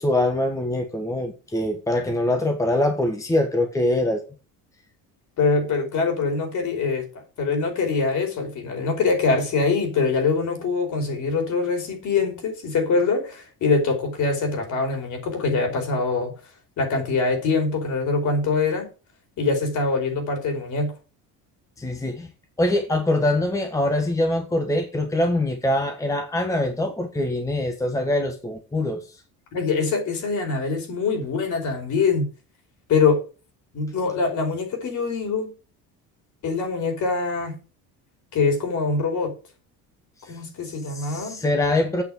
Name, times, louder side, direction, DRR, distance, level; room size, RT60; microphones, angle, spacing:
voice 1, 0.0-4.2 21.8-22.3 22.6-29.0 40.2-40.3 40.9-42.0, left 1 dB, 10° left, 1.4 m, -23 dB
voice 2, 5.4-7.1 7.4-16.3 16.8-18.9 19.4-20.9 29.5-32.3 32.9-33.2 33.7-35.5 36.4-37.5 38.3-39.3 40.3-41.4, left 4 dB, 50° left, 4.9 m, -23 dB
8.4 x 6.7 x 7.6 m
cardioid pair, 140°, 37 cm